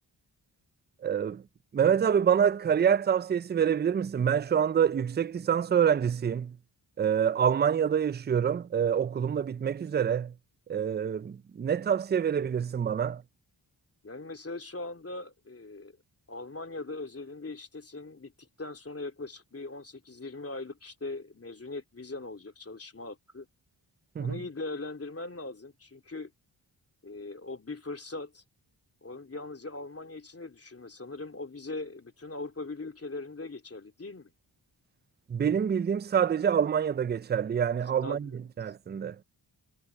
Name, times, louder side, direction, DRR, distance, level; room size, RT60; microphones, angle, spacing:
voice 1, 1.0-1.4 1.7-6.6 7.0-10.3 10.7-13.2 24.2-24.4 35.3-38.3 38.6-39.2, right 8 dB, 25° right, 0.4 m, -26 dB
voice 2, 14.0-16.0 16.3-23.5 24.2-26.3 27.0-28.4 29.0-34.3 38.0-38.2, left 3 dB, 35° left, 3.0 m, -40 dB
cardioid pair, 55°, 43 cm